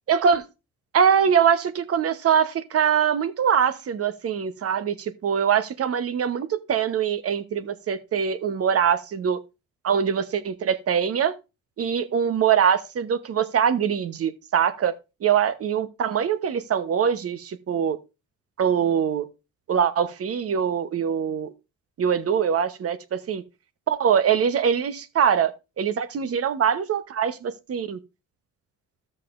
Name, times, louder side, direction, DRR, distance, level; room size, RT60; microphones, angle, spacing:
voice 1, 0.1-0.4 0.9-9.4 9.8-11.3 11.8-14.9 15.2-18.0 18.6-19.2 19.7-21.5 22.0-23.0 23.3-23.4 23.9-25.5 25.8-28.0, right 7 dB, 50° right, 1.0 m, -23 dB
13.5 x 6.6 x 2.5 m
cardioid pair, 90°, 30 cm